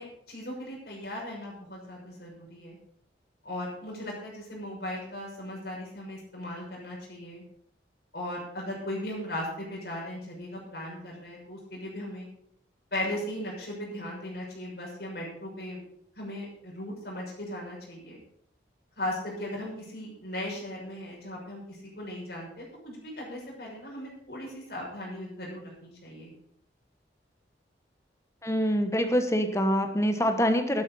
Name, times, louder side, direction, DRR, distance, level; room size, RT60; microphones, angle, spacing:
voice 1, 0.0-2.8 3.4-7.4 8.1-12.3 12.9-15.8 16.2-18.2 19.0-26.3, left 1 dB, 60° left, -3 dB, 6.3 m, -37 dB
voice 2, 28.4-30.8, equal, 15° left, 7 dB, 1.1 m, -25 dB
12.0 x 9.7 x 5.3 m, 0.68 s
head